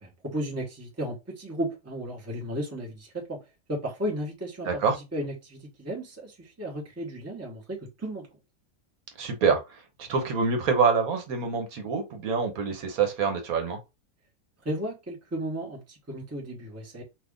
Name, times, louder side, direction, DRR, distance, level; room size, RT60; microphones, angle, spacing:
voice 1, 0.0-3.4 3.7-8.3 14.6-17.0, right 1 dB, 15° right, 0.8 m, -34 dB
voice 2, 4.7-5.0 9.2-9.6 10.0-13.8, right 5 dB, 75° right, 1.3 m, -25 dB
2.8 x 2.4 x 3.5 m
omnidirectional pair, 1.5 m